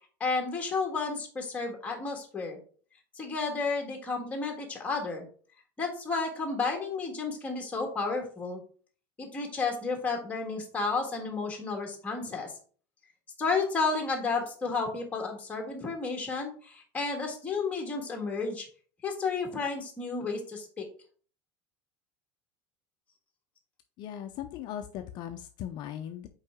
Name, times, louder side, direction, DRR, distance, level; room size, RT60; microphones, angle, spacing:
voice 1, 0.2-2.6 3.2-5.3 5.8-8.6 9.2-12.5 13.4-18.7 19.0-20.8, left 4 dB, 15° left, 2 dB, 1.6 m, -32 dB
voice 2, 24.0-26.3, left 10 dB, 45° left, 6 dB, 0.5 m, -38 dB
5.7 x 4.7 x 3.6 m, 0.43 s
cardioid pair, 155°, 11 cm